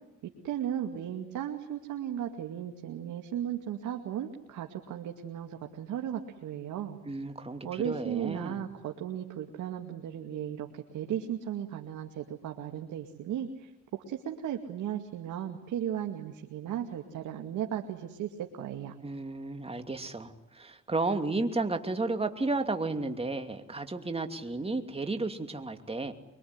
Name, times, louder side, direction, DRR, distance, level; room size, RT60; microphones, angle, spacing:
voice 1, 0.2-7.0 7.6-19.0, right 10 dB, 80° right, 3 dB, 2.3 m, -36 dB
voice 2, 7.0-8.6 19.0-26.1, right 3 dB, 20° right, 6 dB, 2.8 m, -33 dB
24.5 x 24.0 x 9.6 m, 0.92 s
cardioid pair, 90°, 30 cm